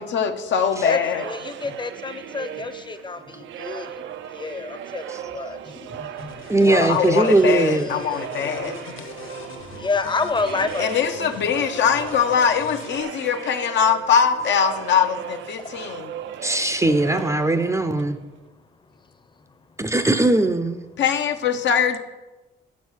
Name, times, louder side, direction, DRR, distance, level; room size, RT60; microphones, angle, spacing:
voice 1, 0.0-1.2 6.6-9.0 10.8-16.1 17.1-17.2 21.0-22.0, left 7 dB, 65° left, 6 dB, 0.8 m, -22 dB
sound 1, 0.6-18.4, right 10 dB, 70° right, 0.5 m, -37 dB
voice 2, 0.8-4.0 4.3-7.5 7.7-11.1 15.6-15.8, left 4 dB, 25° left, 9 dB, 0.7 m, -30 dB
sound 2, 6.2-13.0, left 4 dB, 80° left, 1.4 m, -40 dB
voice 3, 6.5-7.9 16.4-18.2 19.8-20.8, right 2 dB, 15° right, 8 dB, 0.5 m, -19 dB
7.3 x 5.5 x 6.2 m, 1.1 s
cardioid pair, 90°, 20 cm